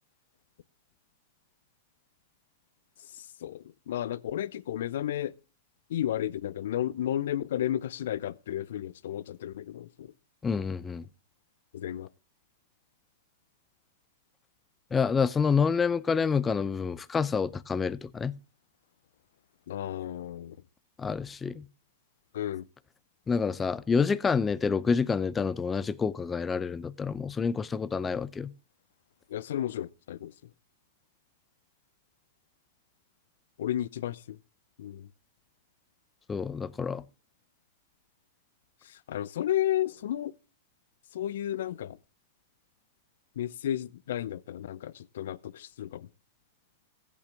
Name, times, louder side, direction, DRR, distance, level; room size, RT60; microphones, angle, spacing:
voice 1, 3.1-5.3 5.9-10.1 11.7-12.1 19.7-20.6 22.3-22.6 29.3-30.3 33.6-34.4 34.8-35.1 38.8-40.3 41.1-42.0 43.4-46.1, left 11 dB, 70° left, 0.6 m, -33 dB
voice 2, 10.4-11.1 14.9-18.3 21.0-21.7 23.3-28.5 36.3-37.0, left 5 dB, 20° left, 0.6 m, -28 dB
15.5 x 8.5 x 3.4 m
hypercardioid pair, 105°, 0 cm